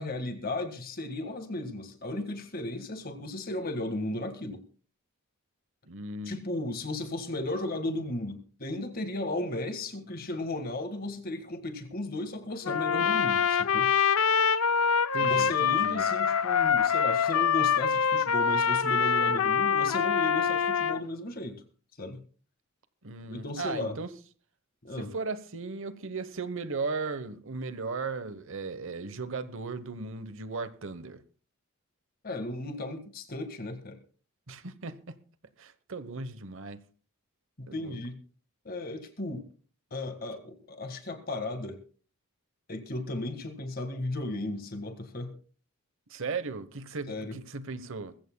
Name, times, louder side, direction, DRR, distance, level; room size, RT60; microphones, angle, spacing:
voice 1, 0.0-4.6 6.3-13.9 15.2-21.6 22.0-22.2 23.3-24.0 24.8-25.1 32.2-34.0 37.6-38.2 38.7-39.4 39.9-41.8 42.7-45.4 47.1-47.4, left 2 dB, 40° left, 1.8 m, -35 dB
voice 2, 5.8-6.4 15.1-16.1 23.0-24.1 25.0-31.2 34.5-35.2 35.6-36.8 37.7-38.0 46.1-48.1, right 4 dB, 60° right, 1.0 m, -36 dB
Trumpet, 12.6-21.0, left 7 dB, 70° left, 0.6 m, -25 dB
21.5 x 15.5 x 2.3 m
head